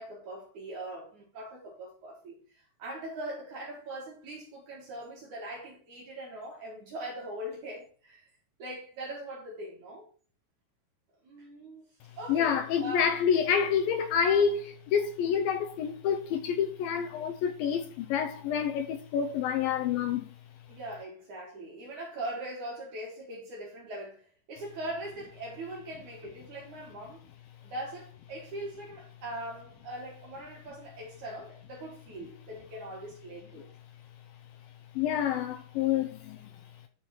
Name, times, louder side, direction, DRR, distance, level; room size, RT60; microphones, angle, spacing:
voice 1, 0.0-8.3 8.6-10.1 11.2-11.8 12.2-13.1 20.7-27.2 27.6-33.7, right 1 dB, 50° right, 3.0 m, -41 dB
voice 2, 12.3-20.3 35.0-36.5, left 7 dB, 85° left, 2.1 m, -28 dB
11.0 x 4.3 x 4.5 m
omnidirectional pair, 4.9 m